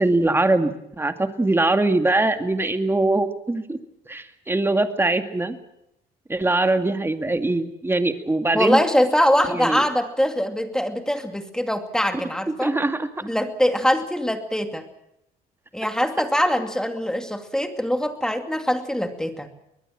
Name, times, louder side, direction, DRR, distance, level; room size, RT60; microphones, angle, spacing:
voice 1, 0.0-3.8 4.1-5.6 6.3-8.8 9.5-9.8 12.6-13.1, right 2 dB, 15° right, 7 dB, 2.1 m, -22 dB
voice 2, 8.5-12.7 13.2-14.9 15.7-19.5, equal, 5° left, 6 dB, 2.5 m, -23 dB
23.5 x 20.0 x 7.6 m, 0.81 s
cardioid pair, 105°, 18 cm